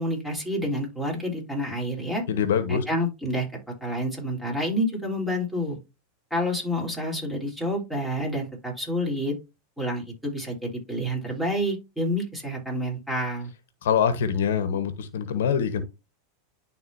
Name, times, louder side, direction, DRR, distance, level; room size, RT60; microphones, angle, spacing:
voice 1, 0.0-2.2 2.7-3.5 3.8-5.8 6.3-9.3 9.8-13.5, equal, 5° right, 3.5 m, -28 dB
voice 2, 2.3-2.8 13.8-15.8, left 7 dB, 80° left, 1.1 m, -24 dB
11.0 x 3.9 x 2.7 m
hypercardioid pair, 115°, 0 cm